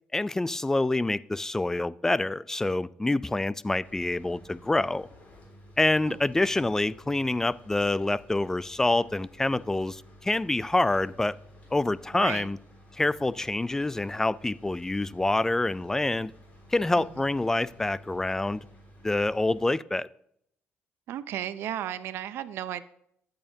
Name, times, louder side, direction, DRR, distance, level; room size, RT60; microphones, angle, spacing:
voice 1, 0.1-5.1 5.8-11.4 11.7-12.6 12.9-16.3 16.7-18.7 19.0-20.1, left 2 dB, 10° left, 0.3 m, -26 dB
sound 1, 3.8-19.6, equal, 40° left, 3.9 m, -52 dB
voice 2, 12.1-12.5 16.9-17.1 21.1-22.8, right 11 dB, 80° right, 0.6 m, -34 dB
14.0 x 8.9 x 2.7 m
cardioid pair, 105°, 4 cm